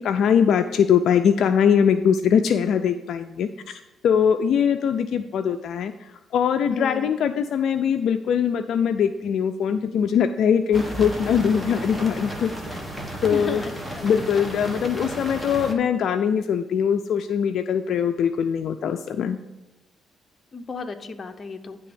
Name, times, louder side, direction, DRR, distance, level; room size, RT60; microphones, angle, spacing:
voice 1, 0.0-5.9 6.3-12.5 13.2-13.6 14.0-19.4, left 7 dB, 70° left, 8 dB, 0.4 m, -22 dB
voice 2, 6.7-7.1 13.3-14.0 20.5-21.8, left 4 dB, 40° left, 6 dB, 0.8 m, -34 dB
sound 1, 10.7-15.7, right 1 dB, 5° right, 1.4 m, -33 dB
10.0 x 3.5 x 6.7 m, 1.1 s
cardioid pair, 90°, 0 cm